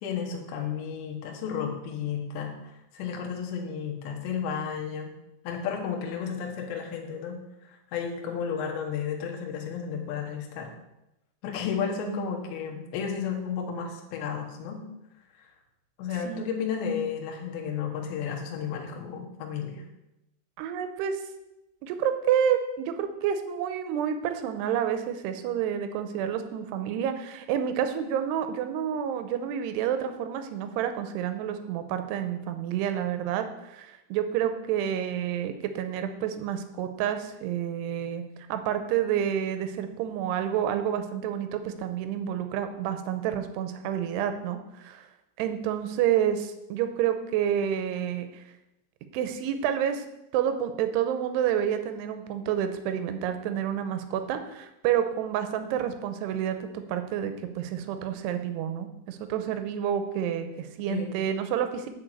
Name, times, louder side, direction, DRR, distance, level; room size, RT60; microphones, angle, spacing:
voice 1, 0.0-5.1 5.5-7.4 7.7-10.7 11.4-14.8 16.0-19.8 60.9-61.1, left 7 dB, 70° left, 1 dB, 3.5 m, -33 dB
voice 2, 16.3-16.6 20.6-21.2 21.8-38.2 38.5-45.0 45.4-48.4 49.1-50.1 50.3-61.9, right 9 dB, 80° right, 8 dB, 2.4 m, -29 dB
10.0 x 4.6 x 7.9 m, 0.90 s
omnidirectional pair, 5.5 m